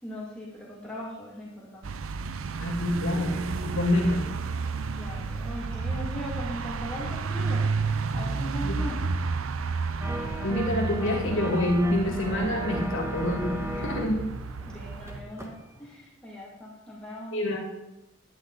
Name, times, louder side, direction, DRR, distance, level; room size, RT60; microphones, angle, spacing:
voice 1, 0.0-2.0 2.4-2.8 4.0-4.2 4.9-9.1 14.6-17.4, equal, 5° left, -6 dB, 2.5 m, -40 dB
sound 1, 1.8-15.2, right 4 dB, 75° right, 0.6 m, -32 dB
voice 2, 2.6-4.2 8.6-8.7 10.4-14.2 17.3-17.6, left 1 dB, 65° left, 0 dB, 2.3 m, -27 dB
sound 2, 10.0-15.6 15.8-15.9, right 1 dB, 15° right, 1.3 m, -36 dB
11.0 x 9.8 x 4.1 m, 0.89 s
head